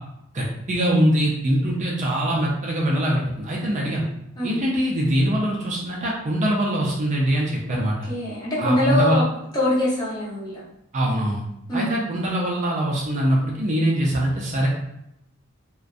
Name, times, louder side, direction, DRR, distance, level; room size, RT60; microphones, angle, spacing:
voice 1, 0.3-4.0 4.4-8.0 8.6-9.2 10.9-11.4 11.7-14.7, right 1 dB, 35° right, -3 dB, 0.4 m, -23 dB
voice 2, 7.7-9.3 9.5-10.6 11.7-12.0, left 1 dB, 20° left, -7 dB, 0.7 m, -24 dB
2.5 x 2.1 x 2.4 m, 0.82 s
head